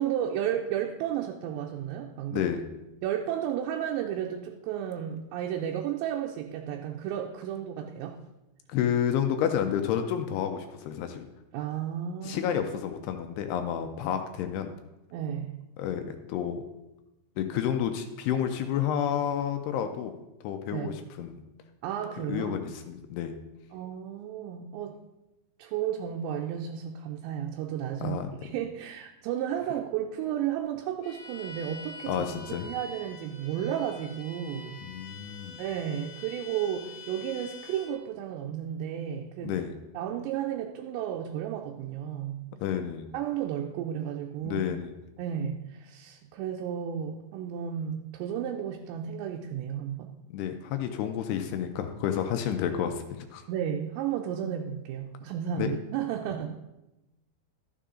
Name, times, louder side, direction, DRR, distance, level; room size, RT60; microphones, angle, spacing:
voice 1, 0.0-2.5 3.0-8.2 11.5-12.5 15.1-15.6 20.7-20.9 21.8-22.6 23.7-25.0 25.6-32.3 32.6-34.8 35.6-39.6 39.9-42.5 43.1-44.6 45.2-50.1 53.5-56.6, right 9 dB, 85° right, 1 dB, 2.9 m, -33 dB
voice 2, 2.3-2.6 8.7-11.3 12.2-14.7 15.8-16.6 17.4-20.2 20.4-21.4 22.3-23.3 28.0-28.3 32.1-32.7 34.8-35.6 39.4-39.7 42.6-43.1 44.4-45.0 50.3-53.4 55.6-55.7, left 9 dB, 80° left, 6 dB, 2.5 m, -30 dB
Bowed string instrument, 31.0-38.0, left 3 dB, 60° left, 2.1 m, -46 dB
13.0 x 6.9 x 3.7 m, 0.97 s
omnidirectional pair, 5.0 m